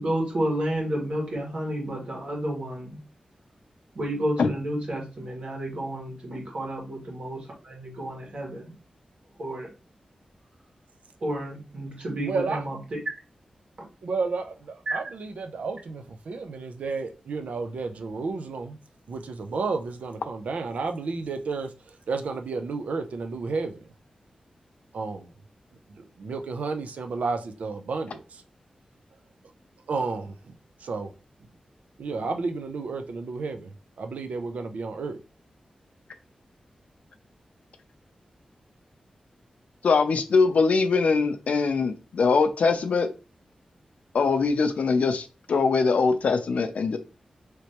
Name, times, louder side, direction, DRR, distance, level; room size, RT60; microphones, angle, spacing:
voice 1, 0.0-3.0 3.9-8.7 9.4-9.7 11.2-13.0 14.9-15.0, right 1 dB, 55° right, 1.6 m, -31 dB
voice 2, 12.2-12.6 14.0-18.8 19.1-23.8 24.9-25.3 25.9-28.4 29.9-31.1 32.0-33.7 34.0-35.2, right 4 dB, 85° right, 0.4 m, -32 dB
voice 3, 39.8-43.1 44.1-47.0, left 4 dB, 75° left, 0.4 m, -22 dB
3.2 x 3.0 x 2.8 m
wide cardioid pair, 140°, 2 cm